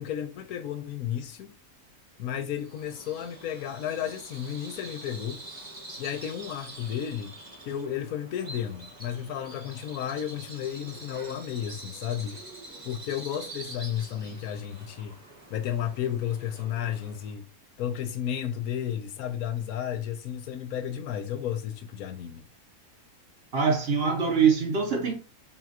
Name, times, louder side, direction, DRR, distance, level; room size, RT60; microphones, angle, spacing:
voice 1, 0.0-1.5 2.2-5.4 6.0-7.3 7.7-12.4 12.8-15.2 15.5-17.5 17.8-22.4, left 9 dB, 90° left, 1.2 m, -33 dB
Bird vocalization bird call bird song, 2.6-17.4, right 2 dB, 25° right, 1.0 m, -46 dB
voice 2, 23.5-25.1, right 6 dB, 50° right, 1.0 m, -23 dB
5.6 x 2.4 x 2.8 m
omnidirectional pair, 1.5 m